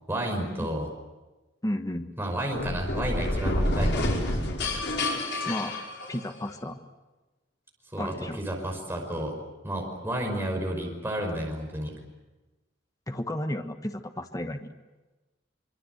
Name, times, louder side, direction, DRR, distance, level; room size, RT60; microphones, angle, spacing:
voice 1, 0.1-0.9 2.2-4.1 7.9-9.3 9.6-11.9, right 1 dB, 10° right, 1 dB, 5.5 m, -31 dB
voice 2, 1.6-2.1 5.4-5.8 6.1-6.8 8.0-8.4 13.1-14.7, left 1 dB, 20° left, 7 dB, 1.4 m, -33 dB
sound 1, 2.5-6.5, left 1 dB, 65° left, 5.3 m, -28 dB
25.5 x 25.0 x 8.1 m, 1.1 s
head